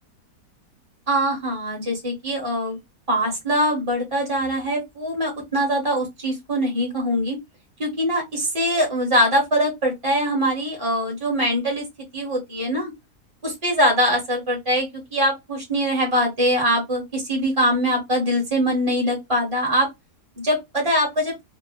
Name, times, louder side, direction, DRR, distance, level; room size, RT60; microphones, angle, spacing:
voice 1, 1.1-2.8 3.1-7.4 7.8-11.8 12.1-12.9 13.4-19.9 20.4-21.3, equal, 25° right, -1 dB, 0.8 m, -22 dB
2.9 x 2.0 x 2.3 m, 0.19 s
omnidirectional pair, 1.6 m